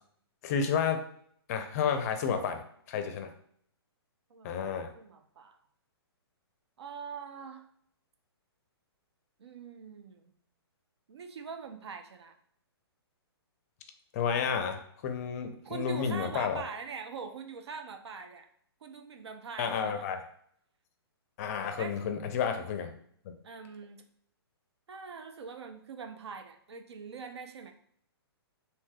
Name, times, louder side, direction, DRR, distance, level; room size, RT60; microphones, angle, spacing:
voice 1, 0.4-1.0 1.5-2.6 2.9-3.3 4.4-4.9 14.1-16.6 19.6-20.2 21.4-22.9 23.3-23.4, left 7 dB, 35° left, 7 dB, 0.4 m, -31 dB
voice 2, 4.3-5.6 6.8-7.6 9.4-10.4 11.1-12.4 15.6-18.5 18.8-20.0 21.8-22.0 23.4-24.1 24.9-27.7, right 5 dB, 80° right, 6 dB, 0.5 m, -43 dB
3.3 x 2.7 x 2.2 m, 0.64 s
hypercardioid pair, 140°, 14 cm